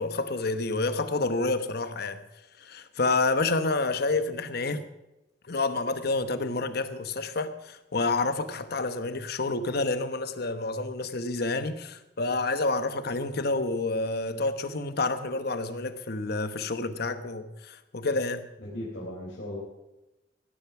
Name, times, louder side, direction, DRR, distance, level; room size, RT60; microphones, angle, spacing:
voice 1, 0.0-2.2 2.6-4.8 5.5-18.5, left 3 dB, 60° left, 1.1 m, -29 dB
voice 2, 18.6-19.6, left 1 dB, 80° left, 4.1 m, -37 dB
17.0 x 10.5 x 6.0 m
head